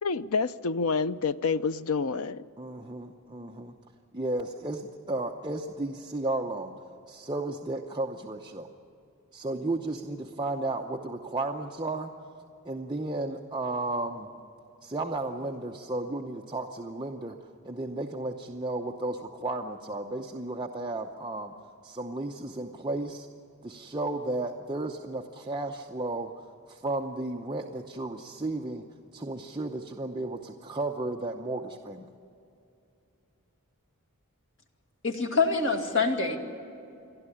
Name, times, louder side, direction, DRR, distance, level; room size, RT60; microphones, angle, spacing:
voice 1, 0.0-2.4, left 4 dB, 80° left, 13 dB, 0.6 m, -28 dB
voice 2, 2.6-3.7 4.1-6.7 7.1-8.7 9.3-12.1 12.6-14.3 14.8-17.4 17.6-21.5 21.8-23.3 23.6-26.3 26.7-28.8 29.1-32.1, right 2 dB, 20° right, 1 dB, 0.8 m, -33 dB
voice 3, 35.0-36.4, left 4 dB, 60° left, 3 dB, 2.2 m, -25 dB
28.5 x 11.5 x 9.9 m, 2.6 s
head